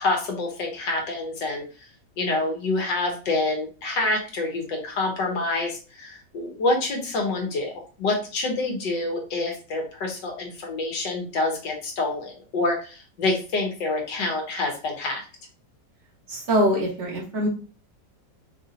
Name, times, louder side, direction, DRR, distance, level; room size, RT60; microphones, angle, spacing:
voice 1, 0.0-1.6 2.2-7.7 8.0-15.2, left 2 dB, 75° left, 1 dB, 1.8 m, -27 dB
voice 2, 16.3-17.5, equal, 40° right, -3 dB, 1.7 m, -23 dB
5.3 x 2.7 x 2.7 m, 0.34 s
omnidirectional pair, 1.9 m